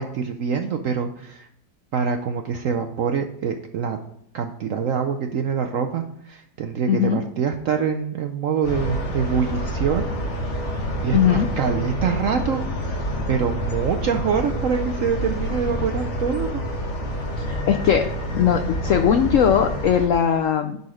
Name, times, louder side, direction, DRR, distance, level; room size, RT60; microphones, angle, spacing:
voice 1, 0.0-1.5 1.9-4.0 4.3-10.1 11.0-16.6 17.1-17.2, right 6 dB, 75° right, 6 dB, 0.7 m, -25 dB
voice 2, 6.9-7.2 11.1-11.5 17.4-18.0 18.3-20.8, left 9 dB, 80° left, 7 dB, 0.7 m, -19 dB
sound 1, 8.6-20.1, equal, 40° left, 1.7 m, -27 dB
10.5 x 4.1 x 4.9 m, 0.71 s
omnidirectional pair, 1.9 m